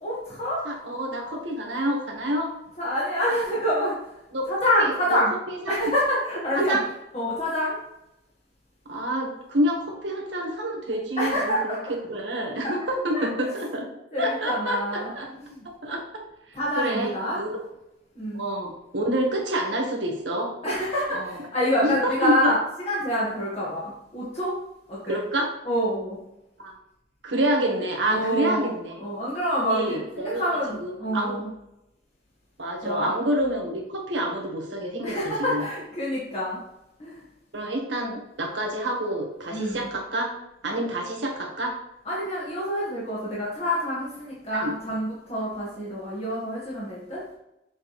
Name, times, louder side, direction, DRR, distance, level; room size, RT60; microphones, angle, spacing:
voice 1, 0.0-0.6 2.8-4.0 4.5-5.3 5.7-6.8 7.1-7.8 11.2-11.9 12.6-12.7 13.1-13.5 14.1-15.6 16.5-17.4 18.1-18.4 20.6-22.6 22.8-24.5 24.9-25.2 25.6-26.2 28.1-28.7 29.0-31.5 32.8-33.1 35.0-36.6 37.0-37.2 39.5-39.8 42.0-47.2, equal, 35° left, -7 dB, 1.7 m, -27 dB
voice 2, 0.6-2.5 4.3-4.5 4.8-5.2 5.5-5.9 6.5-6.9 8.9-11.8 12.1-13.9 14.2-15.3 15.8-16.2 16.8-17.6 18.3-20.5 21.1-21.4 21.8-22.5 25.0-25.5 26.6-26.7 27.2-28.9 29.7-30.4 30.8-31.4 32.6-35.6 37.5-40.3 40.6-41.7 44.5-44.7, right 1 dB, 80° right, 0 dB, 1.5 m, -28 dB
7.4 x 4.4 x 3.3 m, 0.86 s
head